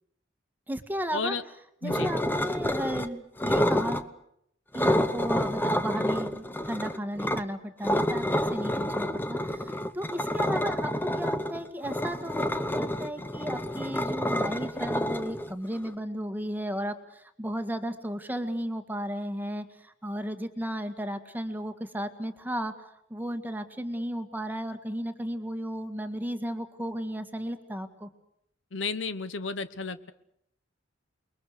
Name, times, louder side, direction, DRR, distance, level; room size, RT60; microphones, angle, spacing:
voice 1, 0.7-1.4 1.8-4.1 4.7-22.7 23.1-28.1, equal, 10° right, 8 dB, 1.9 m, -34 dB
sound 1, 1.9-3.1 3.4-4.0 4.7-7.4 7.8-15.9, left 1 dB, 10° left, 1.0 m, -28 dB
voice 2, 28.7-30.1, left 4 dB, 70° left, 13 dB, 1.1 m, -32 dB
29.0 x 22.0 x 6.7 m, 0.75 s
head